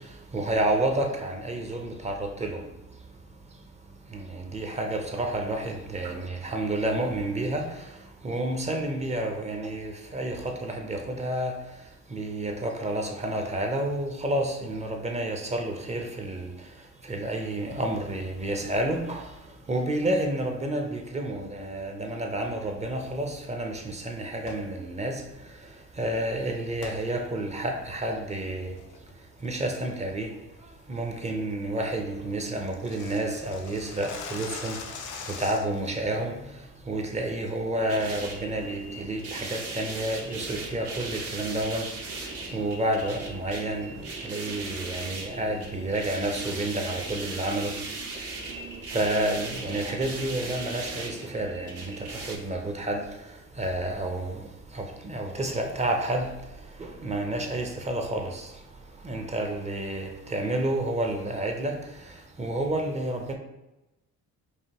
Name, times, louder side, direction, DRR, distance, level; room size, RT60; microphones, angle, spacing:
voice 1, 0.3-2.6 4.1-7.9 8.2-11.5 12.1-16.5 17.0-19.3 19.7-25.2 26.0-28.8 29.4-30.3 30.9-34.8 35.3-36.3 36.9-41.9 42.5-47.7 48.9-53.0 53.6-54.5 54.7-56.3 56.8-58.5 59.0-61.8 62.1-63.3, right 1 dB, 20° right, 3 dB, 0.7 m, -30 dB
sound 1, 24.5-24.7 26.8-27.0 27.5-27.6 28.1-28.4 28.8-29.1 29.4-29.7 30.1-30.2 30.6-30.8 31.2-31.3 31.6-31.7 31.9-32.0 32.2-35.9, left 5 dB, 80° left, 0.6 m, -41 dB
sound 2, 37.7-52.4, right 3 dB, 50° right, 0.9 m, -38 dB
4.8 x 2.6 x 2.9 m, 0.99 s
cardioid pair, 90°, 30 cm